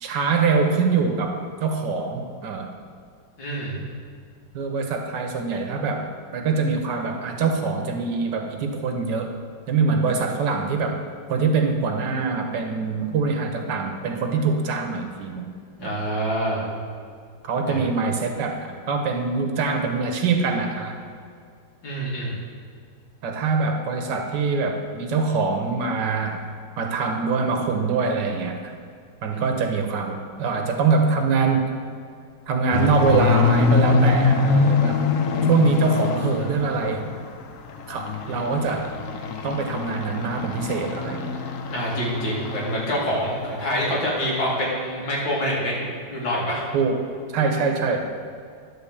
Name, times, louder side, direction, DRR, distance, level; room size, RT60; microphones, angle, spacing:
voice 1, 0.0-2.7 4.5-9.3 9.7-11.0 11.3-15.5 15.8-16.0 17.4-21.0 23.2-26.4 26.8-28.7 29.2-31.7 32.5-35.1 35.4-37.1 37.9-39.0 39.4-41.3 46.7-47.0 47.3-48.1, right 4 dB, 70° right, 4 dB, 1.4 m, -24 dB
voice 2, 3.4-3.8 15.8-16.6 17.7-17.8 21.8-22.4 29.3-29.4 38.2-38.7 41.7-46.7, equal, 85° left, -5 dB, 2.9 m, -26 dB
sound 1, 32.7-37.3 37.6-42.9 43.1-43.4 43.8-43.9 44.3-44.4, left 4 dB, 65° left, 0.8 m, -24 dB
11.0 x 3.8 x 7.1 m, 2.2 s
omnidirectional pair, 2.1 m